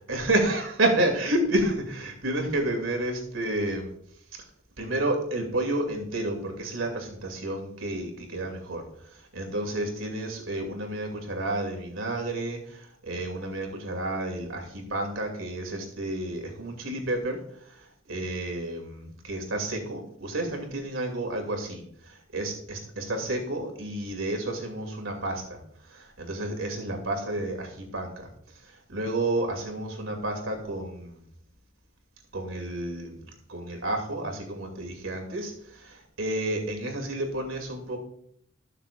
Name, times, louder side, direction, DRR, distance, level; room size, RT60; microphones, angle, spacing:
voice 1, 0.1-3.9 4.8-8.8 9.3-17.4 18.1-25.6 25.9-28.3 28.9-31.2 32.3-33.1 33.5-38.0, right 1 dB, 85° right, 3 dB, 2.5 m, -30 dB
19.5 x 6.7 x 2.4 m, 0.68 s
head